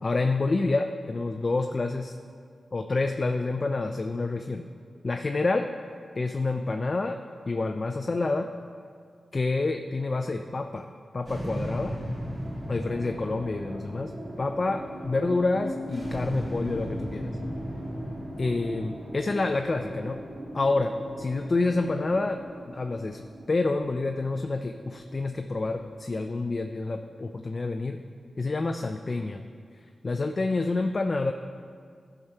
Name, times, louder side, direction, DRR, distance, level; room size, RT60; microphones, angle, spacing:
voice 1, 0.0-2.2 2.7-4.6 5.0-5.7 6.1-7.2 7.5-8.5 9.3-10.9 11.1-12.0 12.7-14.1 14.4-17.4 18.4-20.2 20.5-23.2 23.5-28.0 28.4-29.4 30.0-31.3, left 3 dB, 45° left, 5 dB, 0.4 m, -28 dB
sound 1, 11.3-27.7, equal, 45° right, 2.5 m, -37 dB
11.5 x 4.6 x 5.6 m, 2.1 s
cardioid pair, 50°, 0 cm